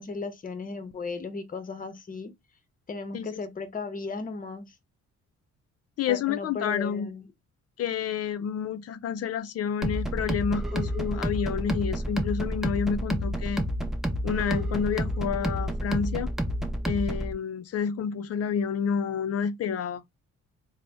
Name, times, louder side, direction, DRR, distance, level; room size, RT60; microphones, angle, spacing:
voice 1, 0.0-2.3 2.9-4.7 6.1-7.2, left 4 dB, 30° left, 0.8 m, -36 dB
voice 2, 6.0-7.1 7.8-13.7 14.2-16.3 16.9-20.0, left 7 dB, 55° left, 0.5 m, -29 dB
sound 1, 9.8-17.3, equal, ahead, 0.6 m, -29 dB
3.8 x 2.1 x 3.4 m
cardioid pair, 110°, 30 cm